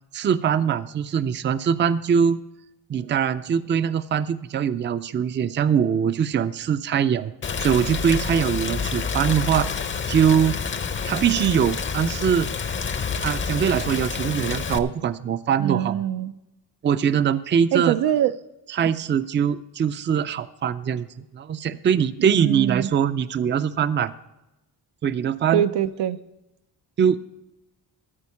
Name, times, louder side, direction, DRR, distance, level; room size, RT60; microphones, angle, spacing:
voice 1, 0.1-2.4 2.9-7.3 7.6-9.7 10.1-10.6 11.1-12.5 13.2-16.0 16.8-18.0 18.7-24.1 25.0-25.7 27.0-27.2, right 8 dB, 30° right, 14 dB, 0.4 m, -22 dB
Rain, 7.4-14.8, left 5 dB, 30° left, 0.6 m, -28 dB
voice 2, 15.6-16.3 17.7-18.3 22.2-22.9 25.5-26.2, right 11 dB, 85° right, 12 dB, 0.6 m, -23 dB
13.5 x 4.5 x 8.4 m, 0.95 s
cardioid pair, 120°, 40 cm